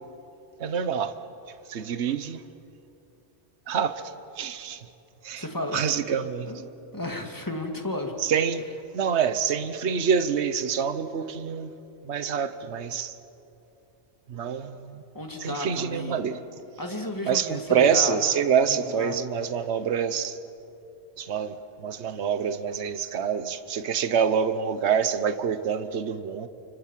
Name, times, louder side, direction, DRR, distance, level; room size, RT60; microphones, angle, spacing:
voice 1, 0.6-1.1 1.7-2.4 3.7-4.9 5.2-5.4 5.7-6.5 8.2-8.6 8.9-11.7 12.0-13.2 14.3-15.0 15.4-16.4 17.3-20.4 21.2-26.5, right 7 dB, 65° right, 11 dB, 1.3 m, -26 dB
voice 2, 5.4-8.1 15.1-16.2 16.8-18.2 18.7-19.2, left 1 dB, 15° left, 3 dB, 2.5 m, -33 dB
30.0 x 25.5 x 7.5 m, 2.8 s
omnidirectional pair, 1.3 m